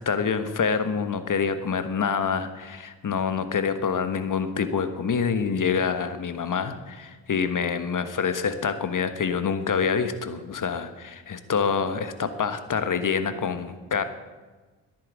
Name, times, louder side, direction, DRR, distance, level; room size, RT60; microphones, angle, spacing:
voice 1, 0.0-14.0, left 6 dB, 40° left, 10 dB, 1.4 m, -26 dB
11.0 x 9.1 x 8.8 m, 1.3 s
hypercardioid pair, 45°, 46 cm